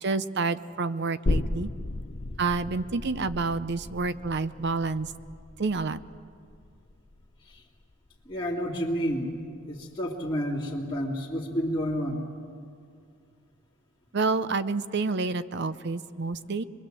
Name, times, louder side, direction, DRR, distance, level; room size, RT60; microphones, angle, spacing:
voice 1, 0.0-1.7 2.4-5.1 5.6-6.0 14.1-16.6, right 4 dB, 55° right, 13 dB, 0.6 m, -28 dB
sound 1, 1.3-8.5 8.9-9.0, left 2 dB, 35° left, 0.6 m, -35 dB
voice 2, 8.3-9.3 9.6-12.2, equal, 15° left, -8 dB, 2.3 m, -30 dB
24.0 x 22.5 x 7.7 m, 2.3 s
head